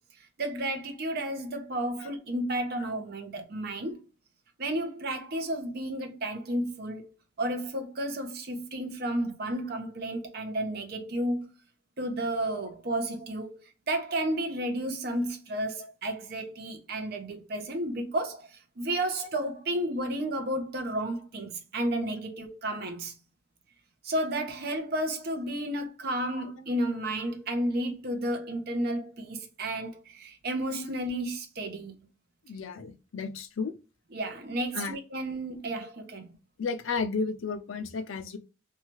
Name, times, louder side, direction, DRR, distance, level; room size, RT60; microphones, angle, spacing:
voice 1, 0.4-4.0 4.6-7.1 7.4-11.4 12.0-23.1 24.0-32.0 34.1-36.3, right 1 dB, 50° right, 0.6 m, -32 dB
voice 2, 32.5-33.7 34.7-35.0 36.6-38.4, left 4 dB, 80° left, 0.5 m, -33 dB
2.7 x 2.3 x 3.0 m
head